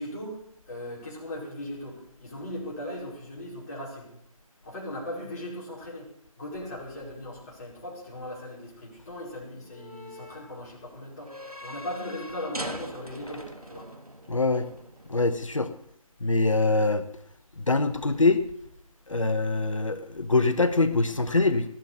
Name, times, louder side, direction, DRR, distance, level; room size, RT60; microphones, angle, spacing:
voice 1, 0.0-4.2 4.6-6.1 6.4-11.3 11.6-13.9, left 1 dB, 30° left, -6 dB, 5.3 m, -38 dB
Creak of metal gate, 6.9-15.2, equal, 85° right, 1.8 m, -43 dB
voice 2, 14.3-14.7 15.1-15.7 16.2-17.0 17.6-18.4 19.1-21.6, left 3 dB, 60° left, 11 dB, 1.2 m, -24 dB
18.5 x 7.5 x 8.2 m, 0.70 s
figure-of-eight pair, 155°, 19 cm